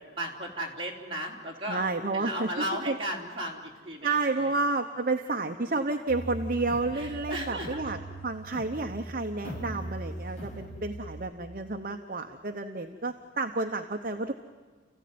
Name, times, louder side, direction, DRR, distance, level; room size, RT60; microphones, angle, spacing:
voice 1, 0.0-1.9 2.1-4.1 4.4-4.5 6.9-8.0, right 1 dB, 25° right, -3 dB, 3.6 m, -35 dB
voice 2, 1.7-3.0 4.0-8.0 8.2-14.3, right 3 dB, 45° right, 5 dB, 0.8 m, -30 dB
sound 1, 6.1-11.3, right 1 dB, 35° left, 5.4 m, -40 dB
30.0 x 15.5 x 9.4 m, 1.4 s
head